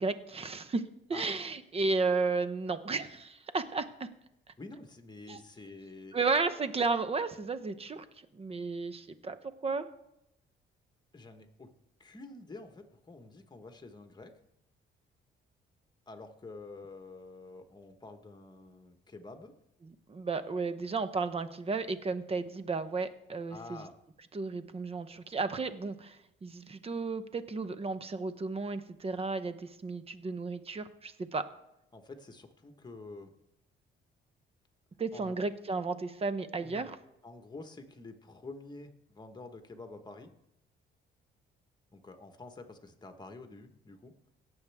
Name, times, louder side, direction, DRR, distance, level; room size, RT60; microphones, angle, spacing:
voice 1, 0.0-4.1 5.3-5.4 6.1-8.0 8.3-9.9 20.1-23.8 24.3-31.5 35.0-37.0, right 4 dB, 30° right, 12 dB, 0.8 m, -33 dB
voice 2, 4.6-6.2 11.1-11.7 12.0-14.3 16.1-19.5 23.5-23.9 31.9-33.3 35.1-35.3 36.5-36.9 37.2-40.3 41.9-44.1, left 3 dB, 20° left, 6 dB, 1.4 m, -48 dB
17.0 x 7.1 x 3.5 m, 0.82 s
cardioid pair, 90°, 20 cm